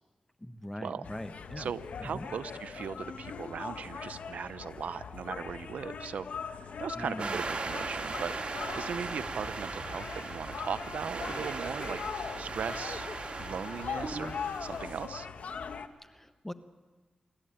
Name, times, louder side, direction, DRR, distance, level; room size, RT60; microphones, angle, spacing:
voice 1, 0.4-1.7 2.0-2.3 7.0-7.4 16.0-16.5, left 1 dB, 10° left, 9 dB, 1.3 m, -41 dB
sound 1, 1.0-15.9, left 6 dB, 85° left, 1.1 m, -41 dB
voice 2, 1.6-8.4 8.8-12.0 12.4-13.1 13.4-14.3 14.6-15.3, right 7 dB, 90° right, 14 dB, 0.7 m, -38 dB
sound 2, 7.2-15.1, right 3 dB, 55° right, 3.1 m, -38 dB
26.0 x 13.5 x 8.9 m, 1.3 s
cardioid pair, 55°, 2 cm